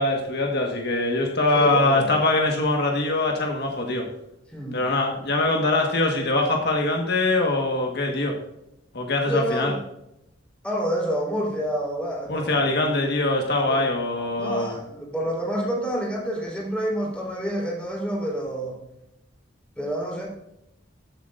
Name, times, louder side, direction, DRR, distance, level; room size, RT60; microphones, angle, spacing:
voice 1, 0.0-4.1 4.7-8.4 8.9-9.7 12.3-14.7, left 2 dB, 60° left, 1 dB, 1.5 m, -23 dB
voice 2, 1.5-2.2 4.5-4.9 9.3-9.8 10.6-12.6 13.7-13.8 14.4-18.8 19.8-20.3, equal, 5° left, -4 dB, 3.6 m, -28 dB
14.5 x 7.5 x 2.6 m, 0.84 s
head